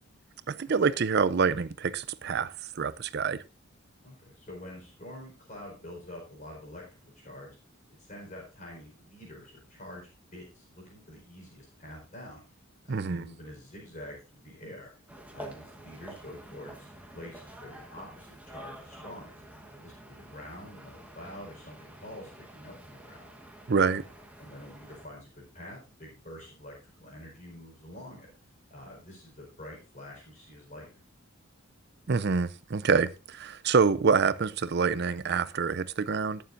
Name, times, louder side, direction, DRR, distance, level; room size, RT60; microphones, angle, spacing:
voice 1, 0.5-3.4 12.9-13.3 23.7-24.0 32.1-36.4, right 5 dB, 50° right, 0.5 m, -26 dB
voice 2, 4.0-7.6 8.0-12.4 12.8-14.9 15.3-19.3 19.8-23.3 23.9-24.1 24.4-28.3 28.7-31.0, left 1 dB, 35° left, 4.6 m, -47 dB
sound 1, 15.1-25.1, right 1 dB, 5° right, 1.2 m, -48 dB
20.5 x 7.1 x 2.6 m
head